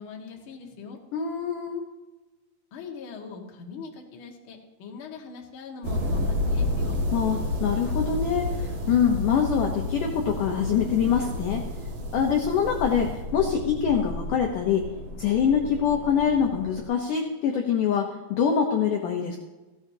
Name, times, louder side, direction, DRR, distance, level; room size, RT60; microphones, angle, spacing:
voice 1, 0.0-1.0 2.7-7.0, left 5 dB, 60° left, 0 dB, 1.3 m, -41 dB
voice 2, 1.1-1.8 7.1-11.7 12.1-14.9 15.2-19.4, left 7 dB, 85° left, 2 dB, 1.8 m, -24 dB
sound 1, 5.8-16.8, left 1 dB, 60° right, 1.3 m, -31 dB
16.0 x 16.0 x 2.8 m, 1.2 s
omnidirectional pair, 5.3 m